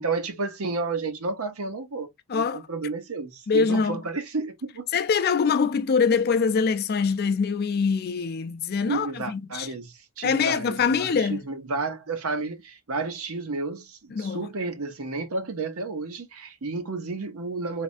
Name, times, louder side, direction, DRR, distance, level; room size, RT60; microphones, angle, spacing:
voice 1, 0.0-4.9 8.9-17.8, right 3 dB, 75° right, 0.8 m, -31 dB
voice 2, 2.3-2.6 3.5-4.0 4.9-9.7 10.2-11.4 14.1-14.4, left 5 dB, 45° left, 0.4 m, -24 dB
3.4 x 3.2 x 2.5 m
head